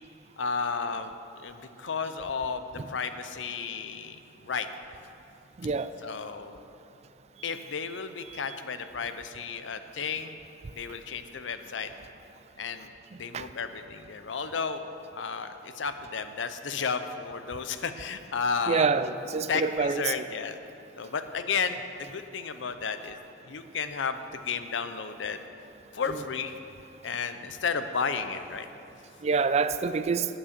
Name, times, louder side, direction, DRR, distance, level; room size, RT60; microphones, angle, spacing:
voice 1, 0.4-1.1 1.4-4.7 6.0-6.6 7.4-10.4 10.8-11.9 12.6-12.9 13.1-14.8 15.2-18.9 19.5-20.6 21.0-23.2 23.5-25.4 25.9-26.7 27.0-28.7, left 5 dB, 80° left, 10 dB, 0.6 m, -33 dB
voice 2, 5.6-5.9 13.3-13.4 18.7-20.1 29.2-30.3, right 5 dB, 35° right, 12 dB, 0.4 m, -26 dB
9.6 x 8.6 x 6.7 m, 2.8 s
head